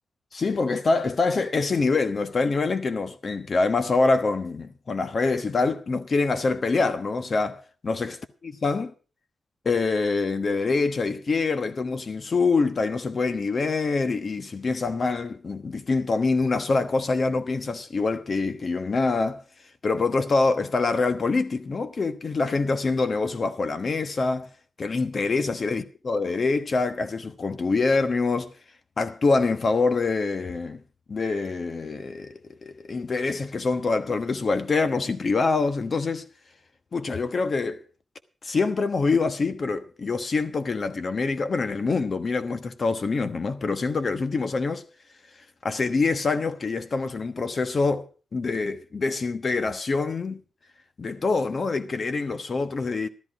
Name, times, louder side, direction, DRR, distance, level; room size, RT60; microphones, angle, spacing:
voice 1, 0.3-8.1 8.6-8.9 9.6-19.4 19.8-24.5 24.8-28.5 29.0-30.8 31.1-36.3 36.9-37.8 38.4-44.8 45.6-48.1 48.3-50.4 51.0-53.1, left 3 dB, 40° left, 1.2 m, -25 dB
13.5 x 13.0 x 4.9 m
wide cardioid pair, 160°, 0 cm